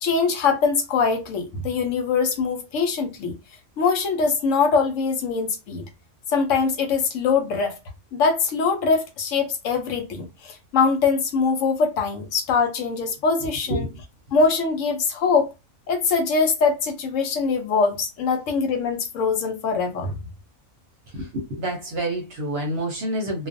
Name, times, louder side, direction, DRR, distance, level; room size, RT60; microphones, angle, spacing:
voice 1, 0.0-3.3 3.8-5.8 6.3-7.7 8.1-13.9 14.3-15.5 15.9-20.2, left 5 dB, 70° left, 0.9 m, -22 dB
voice 2, 21.1-23.5, right 1 dB, 55° right, 0.8 m, -28 dB
2.4 x 2.2 x 2.5 m
omnidirectional pair, 1.4 m